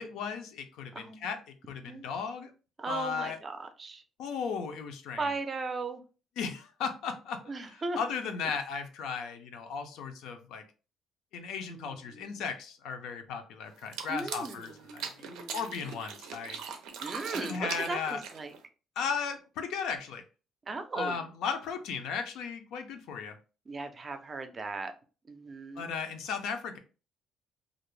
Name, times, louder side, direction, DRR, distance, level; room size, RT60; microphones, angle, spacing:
voice 1, 0.0-1.4 1.7-2.5 2.9-3.4 4.2-5.3 6.4-7.4 7.7-10.6 11.3-15.1 15.5-16.6 17.3-18.2 19.0-20.2 21.0-23.3 25.8-26.8, left 6 dB, 85° left, 6 dB, 0.5 m, -36 dB
voice 2, 0.9-1.3 1.8-2.0 2.8-4.0 5.2-6.0 7.5-8.0 11.7-12.3 14.1-15.9 17.0-18.6 20.7-21.2 23.7-24.9 25.3-25.9, right 3 dB, 30° right, 8 dB, 0.4 m, -38 dB
sound 1, 13.8-18.6, right 6 dB, 90° right, 0.5 m, -41 dB
2.4 x 2.1 x 3.1 m, 0.34 s
cardioid pair, 130°, 0 cm